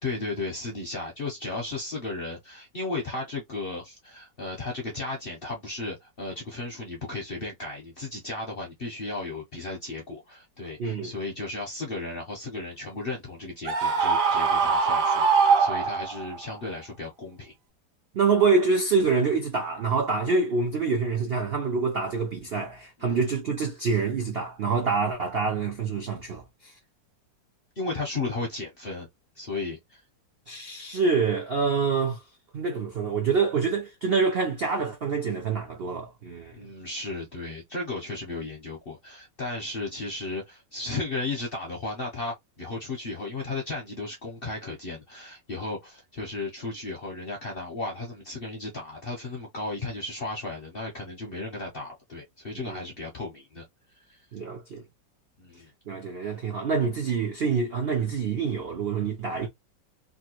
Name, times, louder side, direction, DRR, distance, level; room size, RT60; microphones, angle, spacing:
voice 1, 0.0-17.5 23.0-23.3 27.8-29.1 29.4-30.0 36.5-53.6 54.1-54.2 55.4-55.7, left 3 dB, 55° left, 0.6 m, -35 dB
voice 2, 10.8-11.1 18.1-26.7 30.5-32.2 32.5-36.6 52.7-52.8 54.3-54.8 55.9-59.5, right 5 dB, 80° right, 0.5 m, -26 dB
Screaming, 13.6-16.3, right 5 dB, 60° right, 1.0 m, -22 dB
3.4 x 2.5 x 2.9 m
omnidirectional pair, 2.0 m